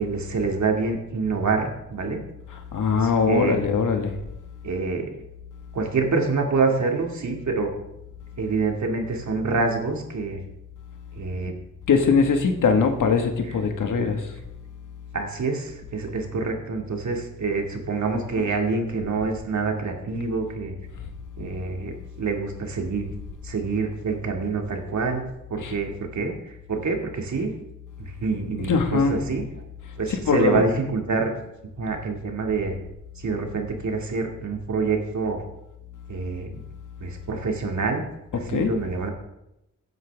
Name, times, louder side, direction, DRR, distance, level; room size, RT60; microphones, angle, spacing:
voice 1, 0.0-2.2 3.0-3.6 4.6-5.2 5.7-7.7 8.4-10.4 11.2-11.5 14.0-14.1 15.1-20.7 21.4-23.1 23.4-25.2 25.5-27.5 28.0-29.5 30.0-31.3 31.8-32.8 33.2-35.4 36.1-36.6 37.0-38.0 38.3-39.1, right 4 dB, 60° right, 3 dB, 2.2 m, -26 dB
voice 2, 2.7-4.1 11.9-14.3 25.6-25.7 28.6-29.2 30.3-30.6 38.5-38.7, left 5 dB, 75° left, 5 dB, 1.7 m, -21 dB
16.0 x 9.2 x 3.5 m, 0.88 s
cardioid pair, 75°, 32 cm